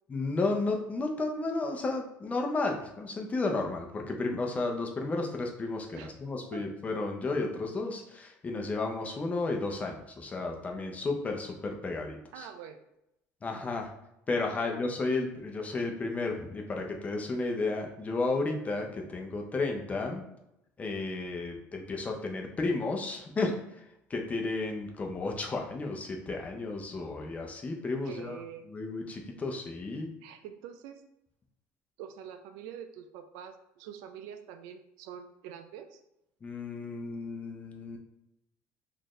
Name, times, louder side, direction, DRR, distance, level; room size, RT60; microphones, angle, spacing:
voice 1, 0.1-12.5 13.4-13.9 14.3-20.2 20.8-23.5 24.1-28.4 28.7-30.1 36.4-38.0, left 3 dB, 25° left, 2 dB, 0.7 m, -33 dB
voice 2, 12.3-12.8 14.4-14.8 28.0-28.7 30.2-31.0 32.0-36.0, right 8 dB, 90° right, 7 dB, 0.4 m, -45 dB
4.2 x 2.6 x 3.1 m, 0.84 s
cardioid pair, 115°, 6 cm